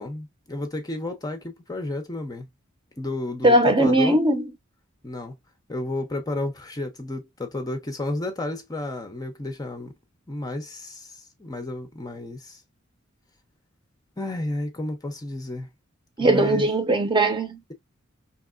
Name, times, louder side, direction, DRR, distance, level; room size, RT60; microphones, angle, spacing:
voice 1, 0.0-2.5 3.0-4.2 5.0-5.3 5.7-9.9 10.3-12.6 14.2-15.7 16.2-16.7, left 2 dB, 20° left, 0.6 m, -32 dB
voice 2, 3.4-4.5 16.2-17.6, right 1 dB, 25° right, 0.8 m, -19 dB
3.4 x 2.9 x 2.4 m
head